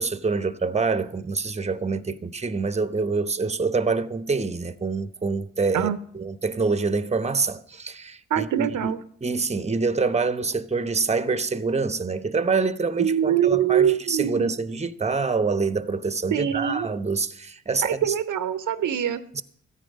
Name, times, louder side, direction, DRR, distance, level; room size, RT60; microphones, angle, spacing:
voice 1, 0.0-5.9 6.1-8.9 9.2-18.1 19.3-19.4, right 4 dB, 20° right, 0.9 m, -26 dB
voice 2, 8.3-9.0 13.0-14.5 16.3-16.9 17.8-19.2, right 9 dB, 65° right, 0.8 m, -23 dB
14.0 x 9.2 x 5.3 m
hypercardioid pair, 45°, 33 cm